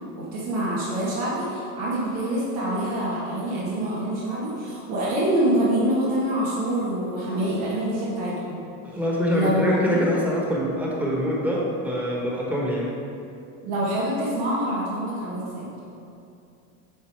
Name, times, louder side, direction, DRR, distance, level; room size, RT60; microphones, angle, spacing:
voice 1, 0.1-8.6 9.3-10.0 13.6-15.8, right 1 dB, 80° right, -8 dB, 1.8 m, -26 dB
voice 2, 8.8-12.9, equal, 5° right, -3 dB, 1.3 m, -24 dB
9.2 x 4.0 x 4.7 m, 2.6 s
supercardioid pair, 125°, 40 cm